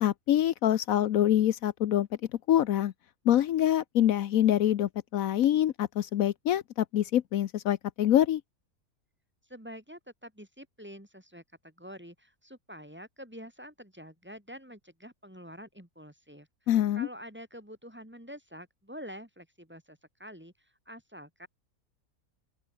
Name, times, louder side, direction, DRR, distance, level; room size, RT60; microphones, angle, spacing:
voice 1, 0.0-2.1 2.5-2.9 3.3-8.4 16.7-17.1, left 11 dB, 75° left, 1.1 m, -25 dB
voice 2, 9.5-16.5 17.0-21.5, equal, 5° right, 2.7 m, -47 dB
open air
omnidirectional pair, 1.5 m